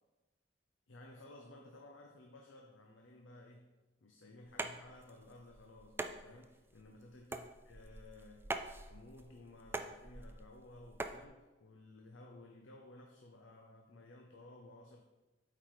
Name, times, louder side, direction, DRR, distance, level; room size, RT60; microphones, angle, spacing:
voice 1, 0.9-3.7 4.0-8.5 8.9-15.1, left 2 dB, 80° left, 1 dB, 0.7 m, -56 dB
sound 1, 4.5-11.2, right 2 dB, 10° right, 0.3 m, -44 dB
8.2 x 4.8 x 3.9 m, 1.1 s
head